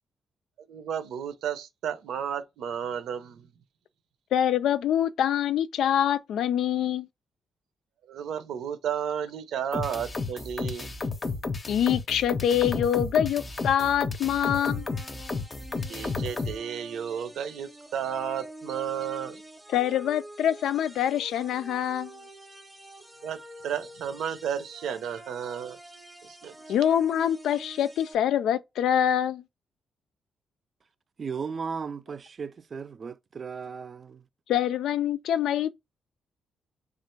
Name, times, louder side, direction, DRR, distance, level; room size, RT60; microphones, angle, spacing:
voice 1, 0.7-3.5 8.1-10.9 15.9-19.4 23.2-25.8 26.2-26.6, right 8 dB, 85° right, 0.7 m, -33 dB
voice 2, 4.3-7.1 11.7-14.9 19.7-22.1 26.7-29.4 34.5-35.7, left 10 dB, 85° left, 0.3 m, -25 dB
sound 1, 9.7-16.6, left 3 dB, 30° left, 0.6 m, -32 dB
sound 2, 14.4-28.1, right 1 dB, 5° right, 0.7 m, -46 dB
voice 3, 31.2-34.3, right 5 dB, 40° right, 0.4 m, -36 dB
3.3 x 2.5 x 4.4 m
cardioid pair, 110°, 0 cm